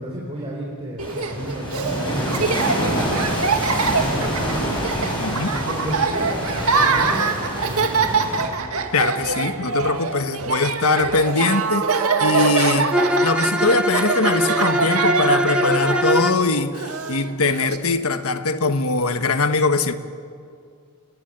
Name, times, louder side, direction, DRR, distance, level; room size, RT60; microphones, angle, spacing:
voice 1, 0.0-4.9 5.4-8.5, equal, 25° right, 4.6 m, -33 dB
sound 1, 1.0-8.5, equal, 20° left, 7.6 m, -27 dB
Laughter, 1.0-17.8, right 4 dB, 70° right, 2.0 m, -24 dB
voice 2, 5.2-5.5 8.9-12.9 13.2-19.9, left 3 dB, 70° left, 1.3 m, -21 dB
Bowed string instrument, 12.9-16.5, equal, 5° right, 0.8 m, -22 dB
29.5 x 21.5 x 9.0 m
head